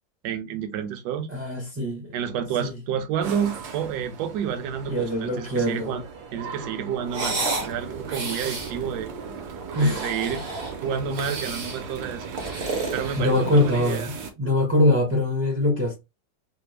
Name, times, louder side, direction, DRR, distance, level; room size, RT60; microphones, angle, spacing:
voice 1, 0.2-1.3 2.1-6.0 6.3-9.1 9.7-10.4 10.8-12.3 12.9-14.1, right 7 dB, 70° right, 1.1 m, -29 dB
voice 2, 1.3-2.1 2.6-2.8 4.9-5.9 9.7-10.1 13.2-14.1 14.4-16.0, left 1 dB, 15° right, 0.4 m, -23 dB
sound 1, 3.2-14.3, right 6 dB, 85° right, 1.4 m, -38 dB
sound 2, 7.1-7.7 8.1-8.7 9.6-10.8 11.1-11.8 12.2-13.7, right 3 dB, 50° right, 0.7 m, -31 dB
3.3 x 2.0 x 3.2 m
omnidirectional pair, 2.0 m